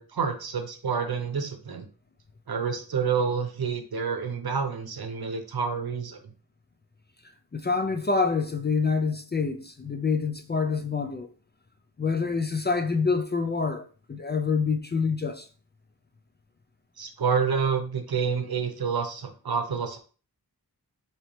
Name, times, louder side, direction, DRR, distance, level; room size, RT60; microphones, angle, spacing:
voice 1, 0.0-1.8 2.5-6.2 17.0-20.0, right 6 dB, 65° right, 0.8 m, -28 dB
voice 2, 7.5-11.3 12.0-13.8 14.1-15.5, left 4 dB, 25° left, 0.4 m, -26 dB
4.1 x 3.0 x 3.2 m
wide cardioid pair, 80°, 39 cm